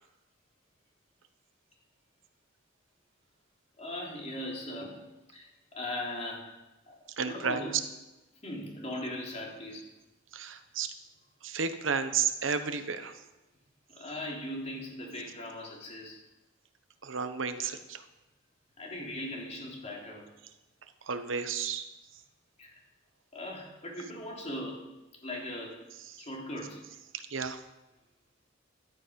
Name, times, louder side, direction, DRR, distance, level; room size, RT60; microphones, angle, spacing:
voice 1, 3.8-5.0 5.3-6.5 6.9-7.7 8.4-9.8 13.9-16.2 18.8-20.3 22.6-22.7 23.3-24.9 25.2-25.8 26.2-26.8, left 1 dB, 35° left, -2 dB, 3.5 m, -39 dB
voice 2, 7.2-7.8 10.3-10.9 11.4-13.1 17.0-18.0 21.1-21.8 26.1-26.2 27.1-27.6, right 6 dB, 75° right, 9 dB, 1.0 m, -32 dB
14.0 x 11.5 x 5.3 m, 1.0 s
head